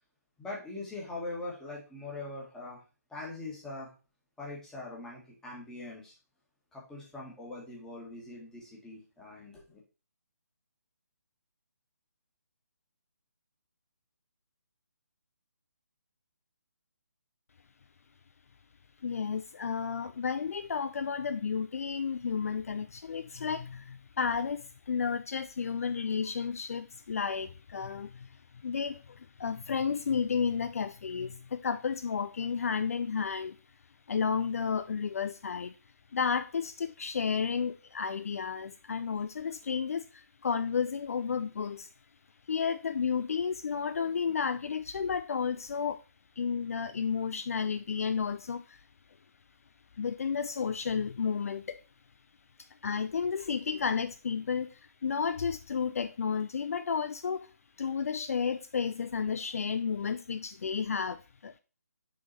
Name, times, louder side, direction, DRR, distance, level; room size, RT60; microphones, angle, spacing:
voice 1, 0.4-2.8 3.1-3.9 4.4-6.1 6.7-9.8, left 2 dB, 5° left, 1.7 m, -42 dB
voice 2, 19.0-33.6 34.1-35.8 36.1-41.9 42.5-46.0 46.4-48.8 50.0-51.8 52.6-57.5 57.8-61.6, left 6 dB, 60° left, 0.4 m, -32 dB
6.2 x 3.7 x 4.2 m
figure-of-eight pair, 150°, 9 cm